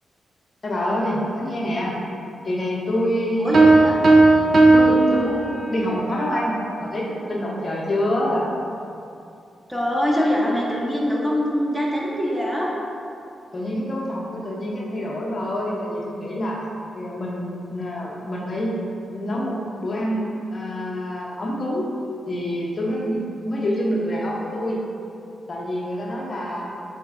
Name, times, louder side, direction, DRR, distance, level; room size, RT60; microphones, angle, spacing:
voice 1, 0.6-1.9 2.4-3.7 4.0-4.2 4.7-8.5 13.5-16.6 16.9-18.8 19.1-21.9 22.3-24.8 25.5-26.6, equal, 50° left, -4 dB, 0.6 m, -26 dB
voice 2, 3.4-4.0 9.7-12.7 26.5-26.6, equal, 5° right, -4 dB, 0.7 m, -23 dB
sound 1, 3.5-5.9, right 2 dB, 60° right, 0.3 m, -15 dB
4.0 x 2.6 x 2.4 m, 2.6 s
supercardioid pair, 40°, 0 cm